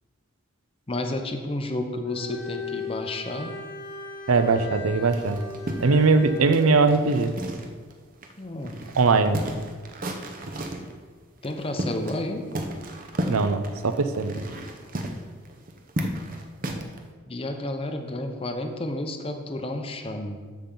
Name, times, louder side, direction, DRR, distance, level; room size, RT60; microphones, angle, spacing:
voice 1, 0.9-3.5 8.4-8.8 11.4-12.5 17.3-20.4, left 1 dB, 25° left, 5 dB, 0.7 m, -31 dB
Bowed string instrument, 2.1-6.6, left 4 dB, 55° left, 1.5 m, -38 dB
voice 2, 4.3-5.4 5.8-7.3 9.0-9.4 13.3-14.4, right 4 dB, 80° right, 10 dB, 0.6 m, -20 dB
sound 1, 5.1-7.9 8.2-8.3 8.6-10.9 11.4-12.3 12.5-17.0, right 1 dB, 40° right, 0.7 m, -33 dB
13.5 x 5.8 x 3.8 m, 1.5 s
head